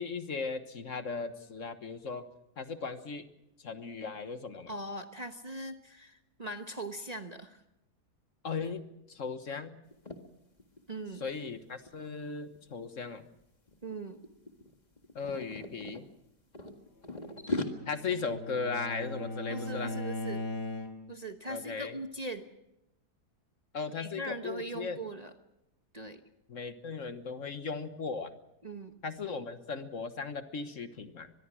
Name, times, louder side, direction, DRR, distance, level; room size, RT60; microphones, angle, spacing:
voice 1, 0.0-2.3 2.6-3.3 3.6-4.7 8.4-9.8 11.2-13.3 15.1-16.0 17.9-19.9 21.5-22.0 23.7-25.0 26.5-28.3 29.0-31.3, left 5 dB, 55° left, 9 dB, 1.6 m, -37 dB
voice 2, 4.7-7.6 10.9-11.2 13.8-14.2 19.5-20.4 21.1-22.5 24.0-25.3 25.9-26.2 28.6-28.9, right 2 dB, 30° right, 5 dB, 1.1 m, -40 dB
sound 1, 9.9-10.2 10.6-10.8 11.1-13.0 13.7-14.0 14.2-16.0 16.5-17.7, left 2 dB, 25° left, 1.9 m, -38 dB
Bowed string instrument, 17.3-21.2, left 1 dB, 85° left, 3.2 m, -39 dB
24.0 x 21.5 x 6.2 m, 0.84 s
omnidirectional pair, 1.7 m